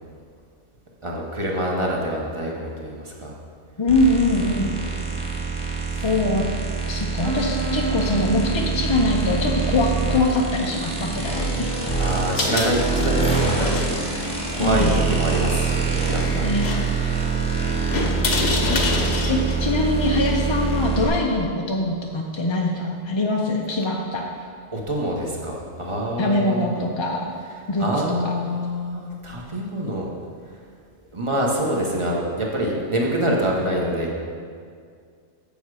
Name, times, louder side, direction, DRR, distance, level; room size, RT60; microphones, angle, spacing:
voice 1, 1.0-3.3 4.5-4.9 5.9-6.2 12.0-13.8 14.5-16.8 24.7-26.9 27.3-30.1 31.1-34.1, right 1 dB, 25° right, -2 dB, 1.2 m, -26 dB
voice 2, 3.8-4.8 6.0-6.5 6.9-11.8 14.6-15.0 16.3-16.8 17.8-17.9 18.6-24.3 26.2-27.3 27.7-28.4, left 2 dB, 35° left, 0 dB, 0.5 m, -23 dB
sound 1, 3.9-21.1, right 4 dB, 5° left, 1.2 m, -25 dB
sound 2, 7.2-18.7, right 3 dB, 85° right, 1.4 m, -35 dB
sound 3, 12.1-20.9, left 3 dB, 65° left, 1.1 m, -29 dB
7.2 x 7.0 x 4.8 m, 2.2 s
omnidirectional pair, 1.2 m